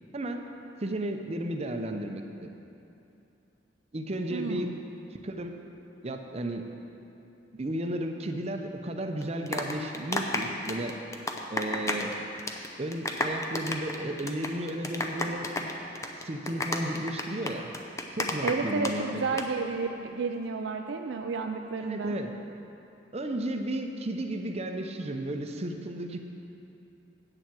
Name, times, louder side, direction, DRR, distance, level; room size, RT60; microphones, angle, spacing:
voice 1, 0.8-2.5 3.9-4.7 5.2-5.6 6.0-6.7 7.5-11.0 11.5-12.2 12.8-15.7 16.2-17.7 18.1-19.2 21.8-22.3 23.1-26.2, right 1 dB, 35° right, 4 dB, 0.7 m, -33 dB
voice 2, 4.3-4.8 18.4-22.1, right 4 dB, 75° right, 4 dB, 0.5 m, -31 dB
sound 1, 9.2-12.1 12.4-12.7 12.9-18.9 19.2-19.4, left 2 dB, 15° left, 0.6 m, -31 dB
8.8 x 7.2 x 7.6 m, 2.8 s
head